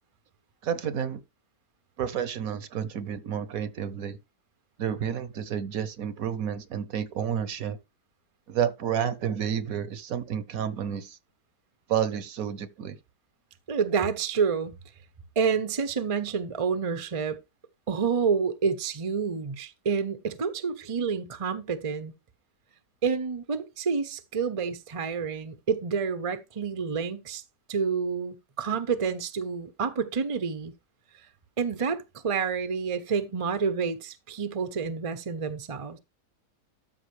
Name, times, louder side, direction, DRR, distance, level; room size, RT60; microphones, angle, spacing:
voice 1, 0.6-1.2 2.0-4.2 4.8-7.8 8.5-11.2 11.9-13.0, right 8 dB, 65° right, 1.1 m, -30 dB
voice 2, 13.7-14.7 15.4-17.4 17.9-22.1 23.0-27.4 27.7-30.7 31.6-36.0, right 6 dB, 35° right, 0.5 m, -28 dB
13.0 x 5.6 x 3.2 m
omnidirectional pair, 1.7 m